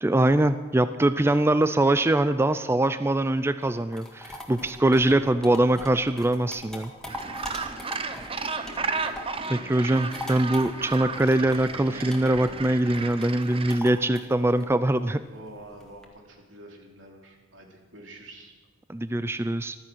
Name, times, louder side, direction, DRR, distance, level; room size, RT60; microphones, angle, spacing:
voice 1, 0.0-6.9 9.5-15.2 18.9-19.8, right 1 dB, 15° right, 12 dB, 0.4 m, -23 dB
sound 1, 3.6-9.4 9.8-16.0, left 1 dB, 5° left, 1.8 m, -41 dB
Gull seagull, 7.1-13.8, right 4 dB, 30° right, 0.8 m, -33 dB
voice 2, 8.7-9.0 9.4-9.9 15.3-18.5, right 1 dB, 80° right, 1 dB, 3.1 m, -47 dB
14.5 x 13.0 x 6.2 m, 1.4 s
head